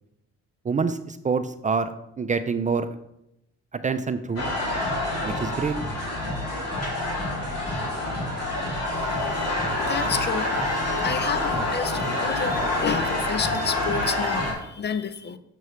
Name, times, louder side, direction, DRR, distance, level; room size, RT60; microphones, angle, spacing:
voice 1, 0.6-1.9 2.2-2.9 3.8-4.5 5.2-5.7, right 5 dB, 25° right, 0.4 m, -26 dB
sound 1, 4.4-14.5, left 1 dB, 55° left, 2.6 m, -27 dB
voice 2, 9.8-10.5 11.0-15.4, left 6 dB, 35° left, 0.5 m, -30 dB
6.8 x 6.4 x 3.1 m
cardioid pair, 90°, 30 cm